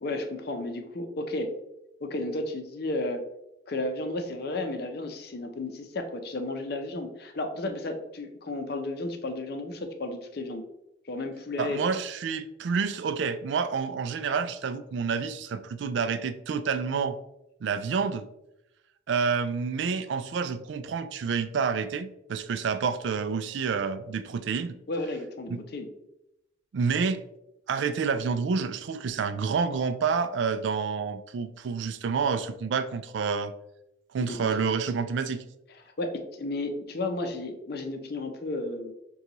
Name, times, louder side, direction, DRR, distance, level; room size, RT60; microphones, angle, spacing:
voice 1, 0.0-1.6 2.0-3.2 3.7-10.7 11.1-11.8 24.9-25.9 34.2-34.8 36.0-38.9, left 2 dB, 55° left, 6 dB, 0.6 m, -33 dB
voice 2, 11.6-17.2 17.6-18.3 19.1-24.8 25.5-25.6 26.7-27.2 27.7-33.5 34.1-35.4, right 5 dB, 70° right, 11 dB, 0.3 m, -28 dB
6.5 x 2.3 x 2.9 m, 0.85 s
head